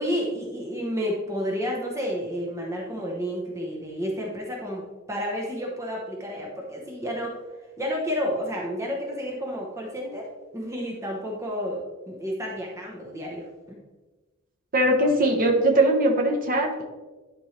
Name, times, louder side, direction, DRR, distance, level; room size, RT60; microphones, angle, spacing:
voice 1, 0.0-7.4 7.8-10.3 10.5-11.8 12.1-13.8, equal, 15° right, -2 dB, 0.9 m, -31 dB
voice 2, 14.7-16.8, right 1 dB, 40° right, 1 dB, 1.0 m, -21 dB
11.0 x 4.4 x 3.3 m, 1.2 s
head